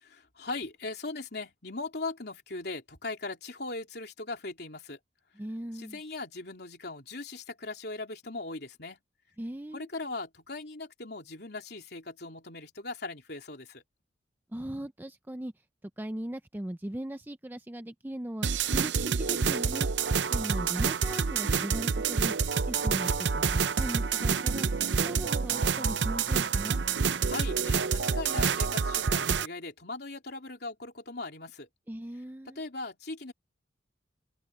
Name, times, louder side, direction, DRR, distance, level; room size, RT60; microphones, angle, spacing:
voice 1, 0.4-5.0 5.7-9.0 9.7-13.8 27.2-31.7 32.5-33.3, left 3 dB, 60° left, 3.6 m, -39 dB
voice 2, 5.4-6.0 9.4-9.9 14.5-15.5 16.0-18.5 18.7-18.9 19.2-19.9 20.3-22.3 22.6-24.7 25.0-26.8 31.9-32.6, right 1 dB, 10° right, 0.5 m, -38 dB
sound 1, 18.4-29.5, right 5 dB, 75° right, 0.6 m, -28 dB
open air
head